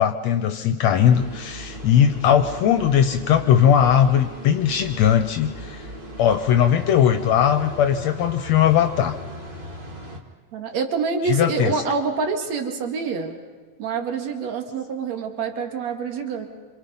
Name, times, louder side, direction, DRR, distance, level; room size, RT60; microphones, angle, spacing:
voice 1, 0.0-5.9 6.2-9.2 11.2-11.7, left 9 dB, 70° left, 7 dB, 2.0 m, -19 dB
sound 1, 1.0-10.2, equal, 20° right, 1.7 m, -38 dB
voice 2, 10.5-13.4 13.8-16.5, right 5 dB, 65° right, 4 dB, 3.2 m, -26 dB
28.0 x 26.5 x 5.5 m, 1.5 s
omnidirectional pair, 3.4 m